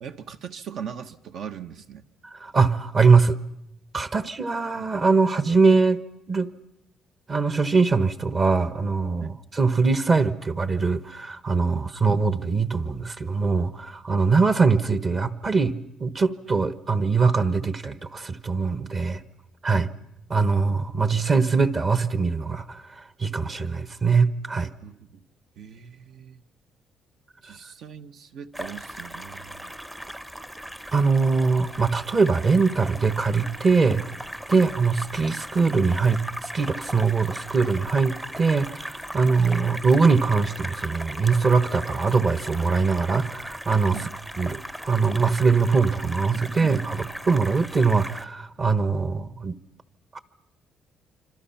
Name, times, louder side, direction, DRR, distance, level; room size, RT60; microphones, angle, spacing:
voice 1, 0.0-2.1 4.8-5.0 9.2-9.3 11.7-11.9 19.7-19.9 24.8-25.2 25.6-26.4 27.4-29.7 34.5-34.7 39.2-39.3 43.9-44.2 46.6-47.1, right 8 dB, 65° right, 7 dB, 1.3 m, -40 dB
voice 2, 2.4-3.4 3.9-6.0 6.3-6.5 7.3-19.2 19.6-19.9 20.3-22.8 23.2-24.7 30.9-34.1 34.5-44.0 44.4-49.6 50.1-50.2, right 4 dB, 30° right, 12 dB, 1.1 m, -22 dB
sound 1, 28.5-48.2, equal, 10° right, 0.8 m, -37 dB
27.0 x 26.0 x 5.8 m, 0.84 s
cardioid pair, 125°, 0 cm